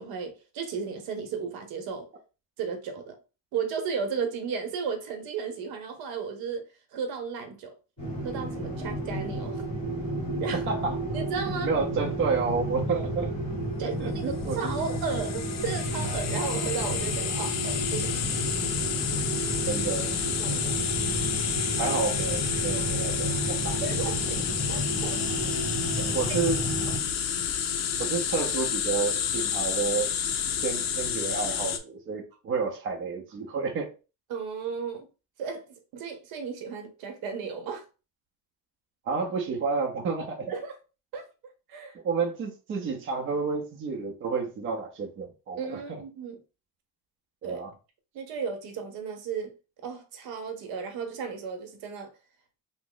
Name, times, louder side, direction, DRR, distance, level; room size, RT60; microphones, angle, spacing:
voice 1, 0.0-2.1 2.6-3.1 3.5-6.6 6.9-7.7 8.2-9.7 10.4-10.6 11.1-11.7 13.8-14.2 14.6-18.2 20.4-20.7 23.8-24.2 24.7-25.6 26.0-26.2 26.9-27.0 34.3-35.1 35.4-35.6 35.9-37.8 40.5-40.8 41.1-42.0 45.6-46.4 47.4-47.6 48.1-49.5 49.8-52.1, right 6 dB, 70° right, 0.8 m, -34 dB
sound 1, 8.0-27.0, right 1 dB, 15° left, 1.5 m, -32 dB
voice 2, 11.6-13.3 13.8-15.0 19.7-20.2 20.6-20.7 21.8-23.8 24.3-24.4 26.1-26.6 28.0-30.1 30.6-33.9 39.1-40.5 42.0-46.0 47.4-47.7, right 4 dB, 35° right, 0.5 m, -30 dB
sound 2, 14.5-31.8, left 8 dB, 50° left, 0.4 m, -30 dB
2.9 x 2.0 x 3.8 m
cardioid pair, 170°, 37 cm